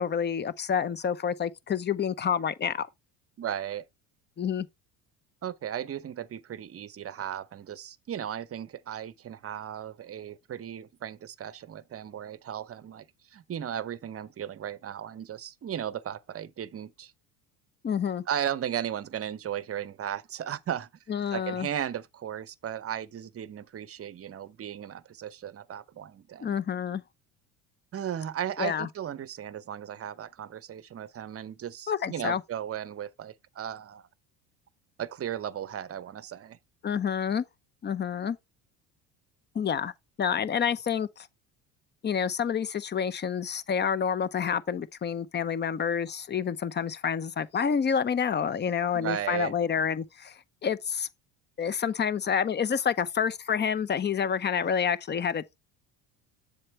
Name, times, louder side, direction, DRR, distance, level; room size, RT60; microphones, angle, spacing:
voice 1, 0.0-2.9 4.4-4.7 17.8-18.2 21.1-21.7 26.4-27.0 28.6-28.9 31.9-32.4 36.8-37.4 37.8-38.4 39.5-39.9 40.2-41.3 42.0-51.1 51.6-55.4, left 7 dB, 25° left, 0.7 m, -28 dB
voice 2, 3.4-3.8 5.4-13.1 13.3-17.1 18.3-20.9 21.3-26.5 27.9-34.0 35.0-36.6 48.9-49.5, right 9 dB, 35° right, 0.8 m, -36 dB
7.5 x 6.9 x 3.2 m
hypercardioid pair, 75°, 43 cm